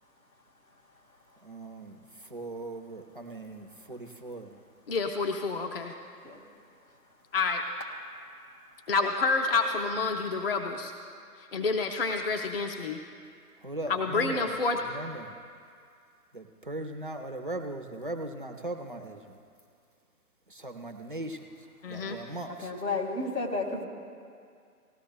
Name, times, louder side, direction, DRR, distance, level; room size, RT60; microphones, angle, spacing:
voice 1, 1.4-2.0 2.3-4.6 13.6-14.5 14.9-15.3 16.3-19.4 20.5-21.4 21.9-22.7, right 2 dB, 35° right, 4 dB, 0.5 m, -38 dB
voice 2, 4.9-5.9 7.3-7.6 8.9-10.9 11.4-13.0 13.9-14.8 21.8-22.2, left 4 dB, 40° left, 3 dB, 0.6 m, -28 dB
voice 3, 22.6-23.8, left 3 dB, 80° left, 0 dB, 2.3 m, -31 dB
18.5 x 13.0 x 2.3 m, 2.3 s
figure-of-eight pair, 140°, 47 cm